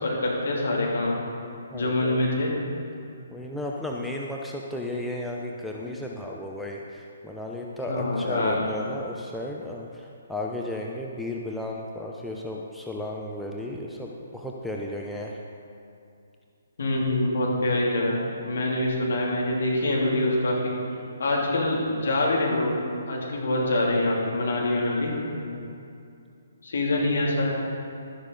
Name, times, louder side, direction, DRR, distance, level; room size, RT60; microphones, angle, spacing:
voice 1, 0.0-1.2 1.7-2.5 7.8-8.6 16.8-20.7 21.2-22.7 23.1-25.1 26.6-27.5, left 1 dB, 55° left, -4 dB, 2.9 m, -25 dB
voice 2, 1.7-2.2 3.3-15.4 25.5-25.8, left 1 dB, ahead, -2 dB, 0.6 m, -34 dB
12.0 x 11.0 x 3.9 m, 2.5 s
figure-of-eight pair, 130°, 0 cm